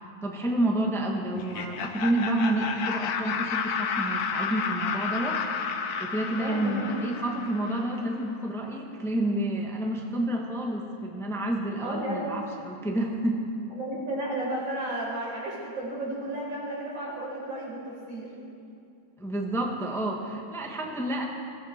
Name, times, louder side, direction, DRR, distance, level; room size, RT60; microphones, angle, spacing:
voice 1, 0.2-5.4 6.0-13.4 19.2-21.3, right 1 dB, ahead, 0 dB, 1.2 m, -29 dB
Laughter, 1.4-8.2, left 6 dB, 60° left, 1.2 m, -32 dB
voice 2, 6.4-7.0 11.8-12.4 13.7-17.8 18.1-18.3, right 1 dB, 80° right, -5 dB, 5.4 m, -33 dB
21.0 x 14.5 x 4.4 m, 2.5 s
omnidirectional pair, 2.0 m